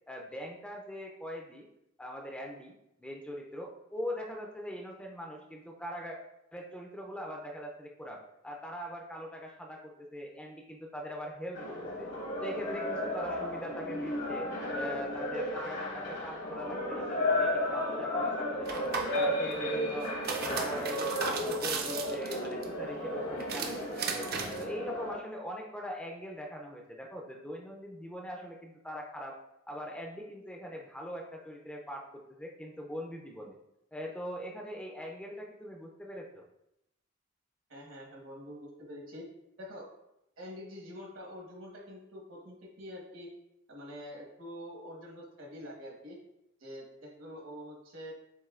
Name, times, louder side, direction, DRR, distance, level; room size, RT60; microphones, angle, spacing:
voice 1, 0.1-1.7 2.0-6.2 6.5-12.1 12.4-18.8 19.1-24.3 24.6-29.4 29.7-33.6 33.9-36.4, equal, 5° left, 0 dB, 0.4 m, -42 dB
sound 1, 11.6-25.2, left 1 dB, 65° left, 1.0 m, -34 dB
sound 2, 18.7-19.2 20.0-22.6 23.4-24.6, right 5 dB, 50° right, 0.5 m, -36 dB
voice 2, 37.7-39.3 39.6-39.9 40.4-43.3 43.7-46.2 46.6-48.1, equal, 75° right, -1 dB, 1.3 m, -46 dB
7.3 x 2.6 x 2.4 m, 0.85 s
head